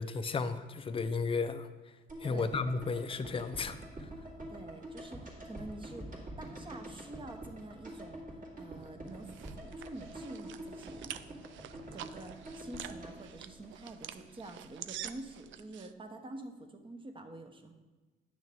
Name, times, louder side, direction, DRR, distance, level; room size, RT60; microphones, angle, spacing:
voice 1, 0.0-1.7 2.2-3.8, left 4 dB, 25° left, 11 dB, 0.5 m, -33 dB
sound 1, 2.1-14.3 14.5-14.6, right 1 dB, 40° right, 2.2 m, -46 dB
voice 2, 2.3-2.7 4.5-11.3 11.9-17.7, right 2 dB, 25° right, 6 dB, 0.9 m, -47 dB
sound 2, 8.8-15.9, right 11 dB, 75° right, 0.4 m, -47 dB
9.3 x 6.3 x 3.5 m, 1.2 s
cardioid pair, 90°, 20 cm